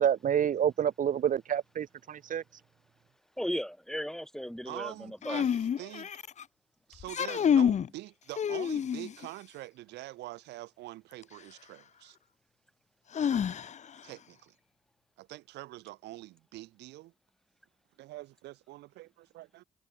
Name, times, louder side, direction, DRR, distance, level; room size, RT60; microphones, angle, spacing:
voice 1, 0.0-2.6, right 9 dB, 50° right, 0.6 m, -28 dB
voice 2, 3.4-5.5, equal, 5° left, 3.7 m, -36 dB
voice 3, 4.6-6.1 6.9-12.2 14.0-14.5 15.2-17.1 18.0-19.6, right 17 dB, 80° right, 6.7 m, -45 dB
sound 1, 5.2-6.4 7.0-7.9 8.4-9.3 11.2-11.3 13.1-14.0, left 8 dB, 45° left, 0.5 m, -28 dB
hypercardioid pair, 45°, 17 cm